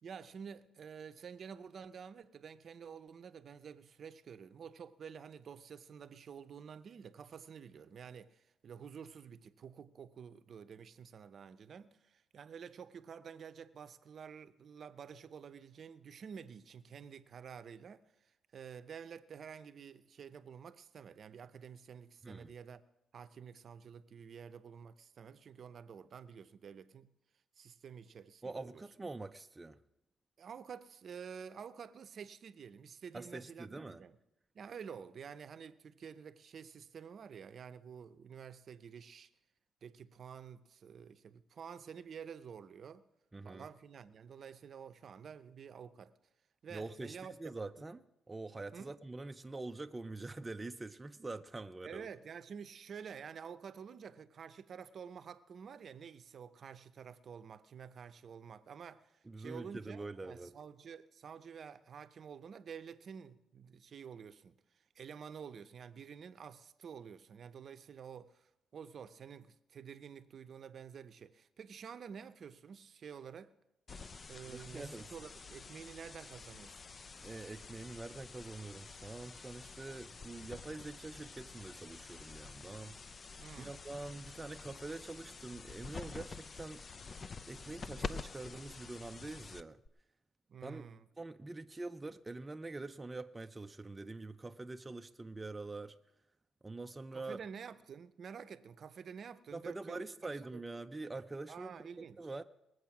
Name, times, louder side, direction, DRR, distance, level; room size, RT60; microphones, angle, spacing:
voice 1, 0.0-18.0 18.5-22.8 23.1-27.1 27.6-29.1 30.4-34.2 34.5-39.3 39.8-43.1 43.4-46.1 46.6-47.6 48.7-49.0 51.8-73.5 74.3-76.8 83.4-83.8 90.5-91.1 97.1-100.0 100.5-100.6 101.5-102.2, right 7 dB, 55° right, 0.7 m, -50 dB
voice 2, 22.2-22.5 28.4-29.8 33.1-34.0 43.3-43.7 46.7-52.1 59.2-60.6 74.4-75.1 77.2-83.0 83.5-86.9 87.5-89.8 90.6-90.9 91.2-96.0 96.6-97.4 99.5-102.4, right 2 dB, 20° right, 0.5 m, -45 dB
sound 1, 73.9-89.9, left 4 dB, 40° left, 0.5 m, -48 dB
21.0 x 8.0 x 5.9 m
cardioid pair, 90°, 0 cm